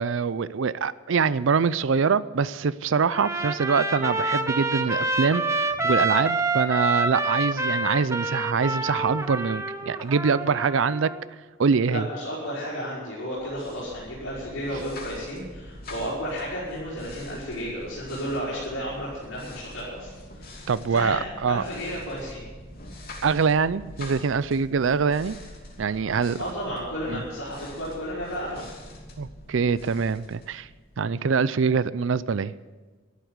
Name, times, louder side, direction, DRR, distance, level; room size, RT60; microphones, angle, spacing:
voice 1, 0.0-11.1 11.6-12.1 20.7-21.6 23.2-25.4 25.8-26.4 27.1-27.2 29.2-30.7 31.0-32.5, right 5 dB, 65° right, 17 dB, 0.5 m, -24 dB
Trumpet, 3.1-11.2, right 2 dB, 15° right, 0.9 m, -27 dB
voice 2, 11.9-21.2 21.5-22.4 26.4-28.6, equal, 85° left, -8 dB, 5.7 m, -33 dB
sound 1, 13.3-31.1, left 1 dB, 45° left, 2.9 m, -44 dB
13.5 x 11.5 x 8.1 m, 1.3 s
head